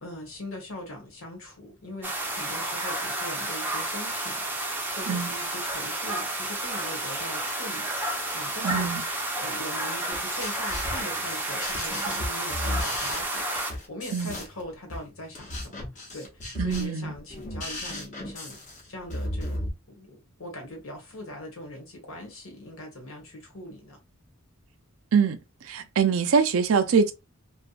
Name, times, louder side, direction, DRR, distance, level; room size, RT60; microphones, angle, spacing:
voice 1, 0.0-7.9 8.3-8.9 9.3-15.9 16.1-18.6 18.9-24.0, left 1 dB, 75° left, 1.1 m, -41 dB
sound 1, 2.0-13.7, right 1 dB, 10° right, 0.5 m, -31 dB
voice 2, 8.6-9.0 14.1-14.3 16.6-17.1 25.1-25.4 25.6-27.1, right 6 dB, 80° right, 0.4 m, -23 dB
sound 2, 10.1-19.7, left 1 dB, 35° left, 0.8 m, -35 dB
2.6 x 2.3 x 2.3 m
head